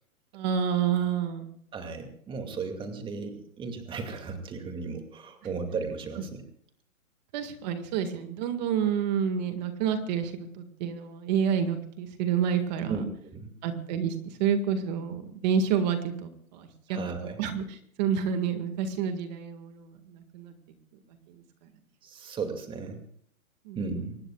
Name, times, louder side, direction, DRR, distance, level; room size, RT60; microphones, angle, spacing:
voice 1, 0.3-1.5 7.3-13.0 13.6-17.0 17.4-20.5 23.7-23.8, right 7 dB, 30° right, 8 dB, 1.9 m, -29 dB
voice 2, 1.7-6.4 12.9-13.0 13.3-13.5 16.9-17.4 22.0-23.0 23.8-24.2, right 4 dB, 10° right, 5 dB, 2.4 m, -35 dB
24.5 x 19.5 x 2.4 m, 0.65 s
hypercardioid pair, 155°, 42 cm